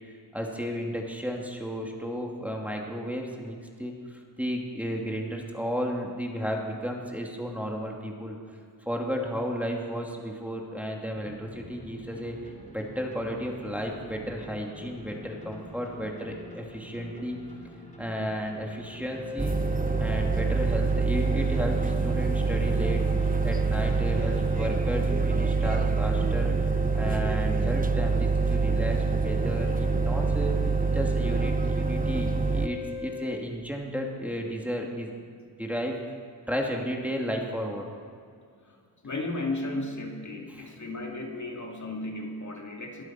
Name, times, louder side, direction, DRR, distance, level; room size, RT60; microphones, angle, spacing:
voice 1, 0.1-8.4 8.9-17.4 18.0-19.6 20.0-23.0 23.4-30.5 30.9-35.1 35.6-36.0 36.5-37.9 40.5-40.7, equal, 5° right, 0 dB, 2.6 m, -33 dB
sound 1, 11.1-24.7, left 1 dB, 15° left, 4.2 m, -45 dB
sound 2, 19.1-33.4, left 5 dB, 65° left, 1.4 m, -37 dB
sound 3, 19.4-32.7, right 5 dB, 20° right, 0.8 m, -26 dB
voice 2, 39.0-43.0, left 2 dB, 40° left, 1 dB, 2.4 m, -35 dB
23.0 x 7.9 x 6.0 m, 2.3 s
cardioid pair, 60°, 43 cm